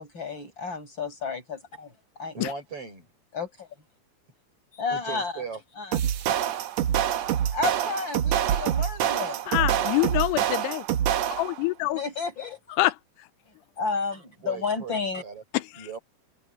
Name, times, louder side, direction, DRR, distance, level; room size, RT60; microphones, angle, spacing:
voice 1, 0.0-1.9 2.2-2.4 3.3-3.7 4.7-5.4 5.8-6.0 7.5-10.2 11.9-12.8 13.8-15.2, left 4 dB, 25° left, 6.6 m, -32 dB
voice 2, 2.3-3.1 4.9-5.6 6.3-6.4 14.4-16.0, right 5 dB, 35° right, 7.5 m, -38 dB
sound 1, 5.9-11.6, right 10 dB, 90° right, 1.5 m, -26 dB
voice 3, 9.5-10.8 11.3-12.0 12.8-12.9 15.5-15.9, left 18 dB, 85° left, 2.8 m, -25 dB
omnidirectional pair, 4.7 m